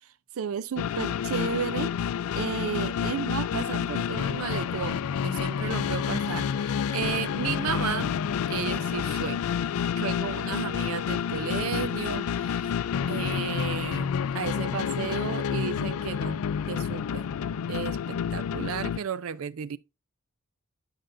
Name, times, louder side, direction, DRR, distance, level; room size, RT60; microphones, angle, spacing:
voice 1, 0.3-2.0 2.3-8.2 8.5-9.4 10.0-12.7 13.1-17.3 17.7-19.8, right 7 dB, 80° right, 0.4 m, -33 dB
sound 1, 0.8-19.0, left 7 dB, 85° left, 0.3 m, -29 dB
11.0 x 5.2 x 2.5 m
head